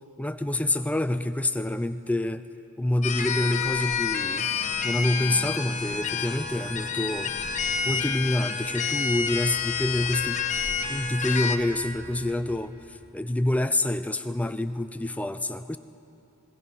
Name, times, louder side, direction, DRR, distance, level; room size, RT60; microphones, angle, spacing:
voice 1, 0.2-2.5 2.8-4.5 4.8-7.4 7.8-10.4 10.8-15.8, left 1 dB, 5° left, 10 dB, 0.5 m, -27 dB
sound 1, 3.0-11.6, left 6 dB, 35° left, 1.0 m, -29 dB
sound 2, 6.7-13.1, right 1 dB, 40° right, 2.7 m, -51 dB
27.0 x 19.0 x 5.6 m, 2.8 s
head